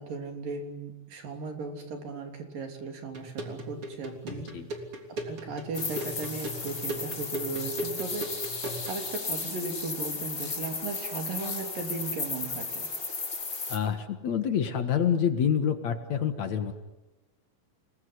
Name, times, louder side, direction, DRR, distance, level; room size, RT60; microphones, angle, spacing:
voice 1, 0.0-4.5 5.3-8.3 8.9-12.9, right 4 dB, 75° right, 4 dB, 5.0 m, -37 dB
sound 1, 3.1-9.0, right 1 dB, 40° right, 4.1 m, -38 dB
voice 2, 4.3-4.7 13.7-16.7, left 8 dB, 60° left, 8 dB, 2.7 m, -27 dB
sound 2, 5.7-13.8, left 4 dB, 35° left, 5.0 m, -35 dB
29.5 x 20.5 x 9.7 m, 1.0 s
omnidirectional pair, 3.9 m